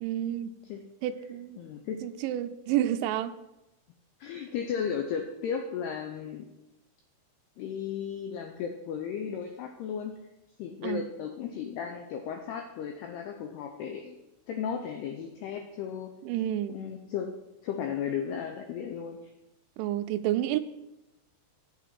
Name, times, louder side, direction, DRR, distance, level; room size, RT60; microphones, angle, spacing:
voice 1, 0.0-0.5 1.0-1.6 2.0-3.3 10.8-11.0 16.2-16.8 19.8-20.6, right 12 dB, 85° right, 2.9 m, -30 dB
voice 2, 1.6-2.0 4.2-6.5 7.6-10.2 10.6-14.2 14.5-16.1 16.7-17.3 17.6-19.3, left 7 dB, 90° left, 2.3 m, -35 dB
7.9 x 6.6 x 7.5 m
omnidirectional pair, 5.7 m